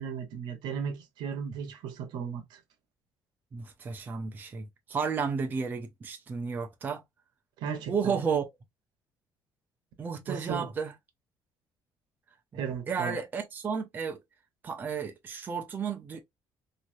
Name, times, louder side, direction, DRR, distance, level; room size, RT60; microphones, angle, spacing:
voice 1, 0.0-2.6 7.6-8.2 10.3-10.7 12.5-13.2, right 7 dB, 80° right, 0.9 m, -35 dB
voice 2, 3.5-7.0 7.9-8.5 10.0-10.9 12.5-12.6 12.9-14.2 14.6-16.2, right 6 dB, 25° right, 0.5 m, -32 dB
3.1 x 2.7 x 2.6 m
cardioid pair, 155°, 7 cm